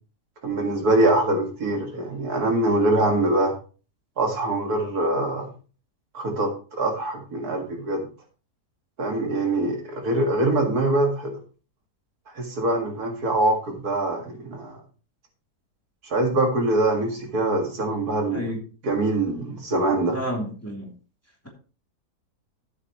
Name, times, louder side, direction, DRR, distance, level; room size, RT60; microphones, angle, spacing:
voice 1, 0.4-3.5 4.2-5.5 6.1-8.1 9.0-11.4 12.3-14.8 16.0-18.5 18.8-20.2, right 2 dB, 70° right, 3 dB, 2.4 m, -23 dB
voice 2, 18.3-18.6 20.1-20.9, equal, 10° left, -1 dB, 3.0 m, -30 dB
13.0 x 8.0 x 3.0 m, 0.36 s
omnidirectional pair, 1.7 m